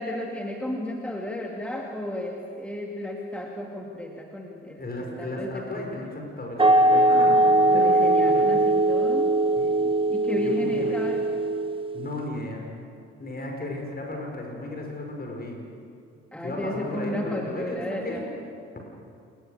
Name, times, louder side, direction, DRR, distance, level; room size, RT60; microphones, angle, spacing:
voice 1, 0.0-5.9 7.7-9.4 10.1-11.3 16.3-18.3, left 1 dB, 5° left, 1 dB, 2.4 m, -33 dB
voice 2, 4.8-8.6 9.6-9.8 10.4-11.0 11.9-12.6 13.2-15.6 16.4-18.2, left 1 dB, 25° left, 1 dB, 5.9 m, -35 dB
sound 1, 6.6-12.0, right 2 dB, 15° right, 1.4 m, -21 dB
27.5 x 20.0 x 6.7 m, 2.6 s
figure-of-eight pair, 50°, 36 cm